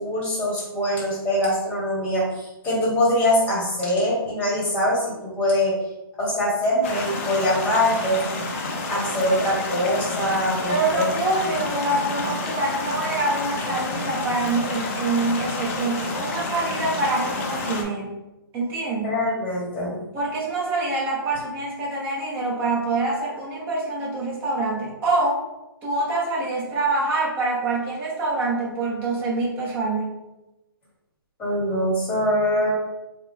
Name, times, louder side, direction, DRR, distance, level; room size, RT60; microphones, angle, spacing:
voice 1, 0.0-5.8 6.2-8.2 8.9-11.1 19.0-20.0 31.4-32.7, left 1 dB, 10° left, -5 dB, 1.3 m, -23 dB
sound 1, 6.8-17.8, left 3 dB, 35° left, 0.7 m, -29 dB
voice 2, 10.7-18.1 18.5-19.2 20.1-25.4 25.8-30.1, right 2 dB, 15° right, -5 dB, 1.0 m, -25 dB
4.8 x 2.3 x 3.6 m, 0.98 s
hypercardioid pair, 155°, 12 cm